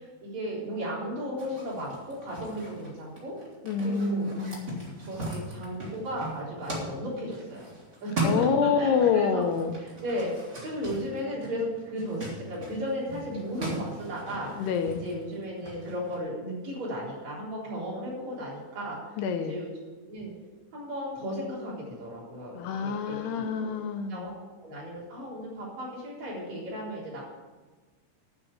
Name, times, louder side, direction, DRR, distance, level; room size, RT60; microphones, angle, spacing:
voice 1, 0.0-3.3 3.8-4.3 5.0-7.6 8.0-9.4 9.8-14.7 15.0-19.2 19.5-19.7 20.1-20.3 20.7-23.7 24.1-24.3 24.6-27.2, equal, 40° right, -6 dB, 4.8 m, -35 dB
sound 1, 1.4-9.1 9.3-16.2, right 2 dB, 25° right, 1.9 m, -38 dB
voice 2, 3.7-4.9 8.2-9.8 14.6-15.0 19.2-19.6 22.5-24.3, left 6 dB, 80° left, 7 dB, 2.5 m, -27 dB
9.8 x 7.2 x 8.4 m, 1.3 s
omnidirectional pair, 5.3 m